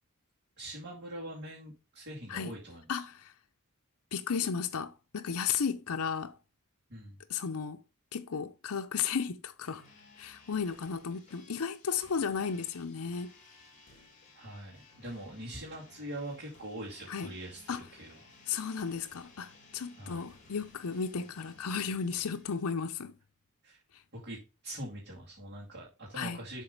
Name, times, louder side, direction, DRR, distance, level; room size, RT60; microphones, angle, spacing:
voice 1, 0.6-3.0 6.9-7.2 14.3-18.2 20.0-20.2 23.6-23.8 24.1-26.6, right 1 dB, 50° right, 2.6 m, -43 dB
voice 2, 2.9-3.3 4.1-6.4 7.3-7.8 8.1-9.8 10.2-13.3 17.1-17.3 17.7-17.8 18.5-23.1 23.9-24.0 26.1-26.4, left 6 dB, 75° left, 0.6 m, -34 dB
sound 1, 9.6-22.6, left 3 dB, 35° left, 2.8 m, -58 dB
7.5 x 4.0 x 5.2 m
head